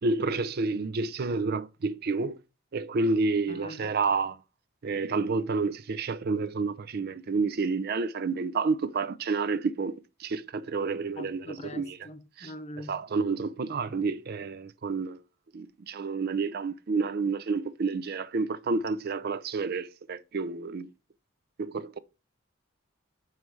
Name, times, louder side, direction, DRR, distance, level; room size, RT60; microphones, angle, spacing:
voice 1, 0.0-2.4 2.7-4.4 4.8-12.0 12.4-12.5 12.9-15.2 15.5-20.9 21.6-22.0, right 4 dB, 50° right, 0.5 m, -29 dB
voice 2, 3.5-3.9 11.2-13.0, left 1 dB, 35° left, 0.8 m, -43 dB
9.1 x 3.2 x 4.7 m
head